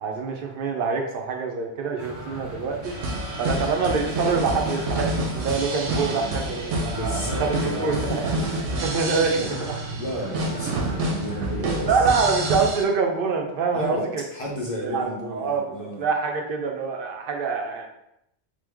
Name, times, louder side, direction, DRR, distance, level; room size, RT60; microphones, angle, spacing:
voice 1, 0.0-2.9 3.4-8.3 8.8-9.8 11.9-14.2 14.8-17.9, right 5 dB, 60° right, 2 dB, 0.7 m, -25 dB
sound 1, 2.0-12.6, right 1 dB, 20° right, 0.5 m, -37 dB
sound 2, 2.8-12.8, right 1 dB, 85° right, 0.9 m, -29 dB
voice 2, 6.1-6.5 7.0-8.8 9.1-9.5 9.7-12.0 13.7-16.0, equal, 45° left, -2 dB, 0.4 m, -33 dB
3.1 x 2.1 x 3.4 m, 0.81 s
omnidirectional pair, 1.2 m